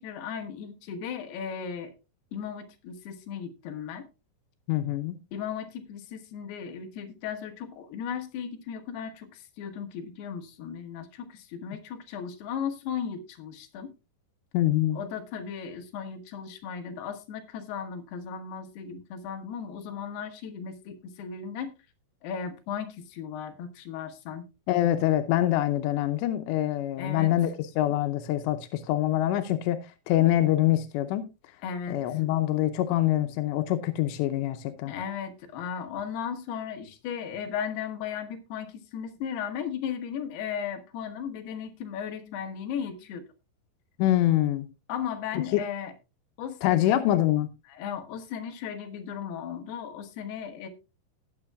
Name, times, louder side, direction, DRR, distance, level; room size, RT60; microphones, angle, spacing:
voice 1, 0.0-1.9 2.3-4.1 5.3-13.9 14.9-21.7 22.2-24.5 27.0-27.3 31.6-32.2 34.9-43.3 44.9-45.9 46.4-47.0 47.7-50.7, left 7 dB, 75° left, 3.3 m, -36 dB
voice 2, 4.7-5.2 14.5-15.0 24.7-27.5 27.8-31.2 31.9-34.9 44.0-44.7 45.5-45.6 46.6-47.5, left 13 dB, 90° left, 3.0 m, -25 dB
18.0 x 7.4 x 2.3 m
omnidirectional pair, 4.9 m